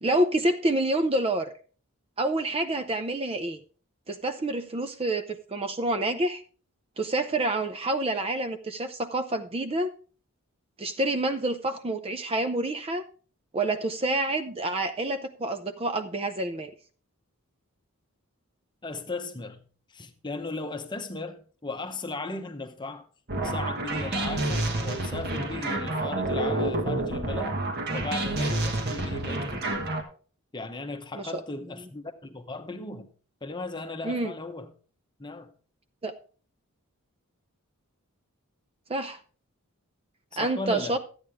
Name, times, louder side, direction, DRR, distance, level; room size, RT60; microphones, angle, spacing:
voice 1, 0.0-1.5 2.2-3.6 4.1-6.4 7.0-9.9 10.8-13.0 13.5-16.7 31.2-31.3 34.0-34.3 36.0-36.1 38.9-39.2 40.4-41.0, right 2 dB, 25° right, 0.5 m, -28 dB
voice 2, 18.8-19.6 19.9-23.1 23.4-27.6 27.9-29.8 30.5-33.1 33.4-34.7 35.2-35.5 40.4-41.0, left 2 dB, 20° left, 0.9 m, -37 dB
sound 1, 23.3-30.0, right 2 dB, 45° right, 1.5 m, -29 dB
12.5 x 8.8 x 3.5 m
head